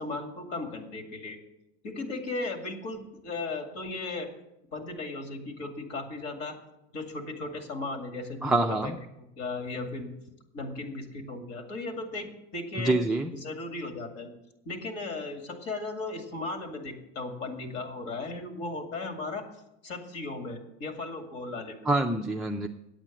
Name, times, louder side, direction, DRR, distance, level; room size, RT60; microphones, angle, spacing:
voice 1, 0.0-1.4 1.8-4.3 4.7-6.6 6.9-10.1 10.5-12.9 13.3-14.3 14.7-19.5 19.8-21.9, left 3 dB, 50° left, 5 dB, 2.3 m, -36 dB
voice 2, 8.4-9.0 12.8-13.3 21.9-22.7, right 2 dB, ahead, 0 dB, 0.3 m, -26 dB
9.0 x 8.7 x 7.4 m, 0.88 s
supercardioid pair, 140°, 31 cm